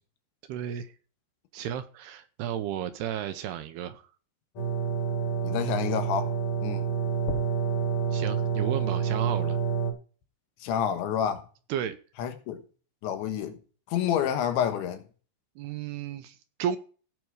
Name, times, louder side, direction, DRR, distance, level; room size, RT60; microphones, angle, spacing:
voice 1, 0.5-0.9 1.5-4.1 8.1-9.6 11.7-12.0 15.6-16.8, right 10 dB, 75° right, 2.6 m, -33 dB
sound 1, 4.6-9.9, right 6 dB, 45° left, 3.0 m, -28 dB
voice 2, 5.4-6.3 6.6-6.8 10.6-11.4 12.2-12.6 13.0-13.6 13.9-15.0, left 9 dB, 85° left, 3.7 m, -28 dB
17.0 x 6.0 x 4.7 m
omnidirectional pair, 5.2 m